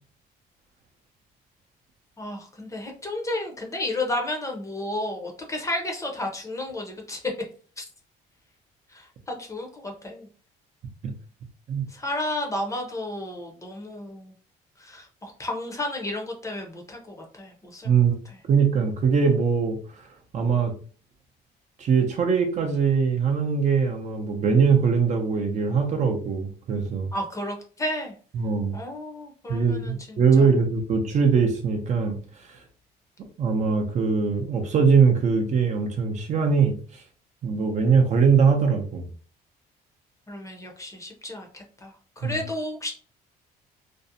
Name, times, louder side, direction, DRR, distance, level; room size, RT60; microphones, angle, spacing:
voice 1, 2.2-7.2 7.8-7.9 8.9-10.3 11.9-14.3 14.8-17.9 27.1-28.1 28.7-30.5 40.3-42.9, left 1 dB, 20° left, 2 dB, 0.6 m, -32 dB
voice 2, 17.8-18.2 18.5-19.8 20.3-20.7 21.8-27.1 28.3-28.7 29.5-32.2 33.4-36.8 37.4-39.1 42.2-42.3, right 5 dB, 45° right, 3 dB, 0.5 m, -21 dB
2.5 x 2.0 x 2.6 m, 0.41 s
cardioid pair, 110°, 17 cm